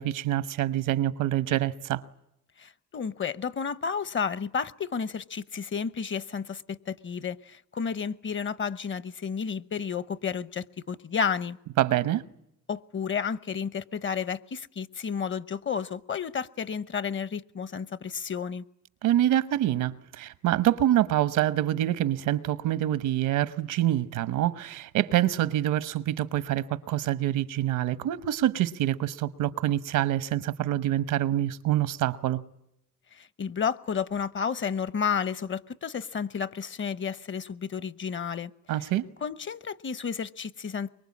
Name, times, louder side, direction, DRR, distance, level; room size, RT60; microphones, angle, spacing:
voice 1, 0.0-2.0 11.8-12.2 19.0-32.4 38.7-39.0, right 13 dB, 85° right, 1.1 m, -26 dB
voice 2, 2.6-11.6 12.7-18.6 33.1-38.5 39.2-40.9, left 6 dB, 40° left, 0.8 m, -31 dB
24.0 x 22.0 x 8.5 m
cardioid pair, 90°, 30 cm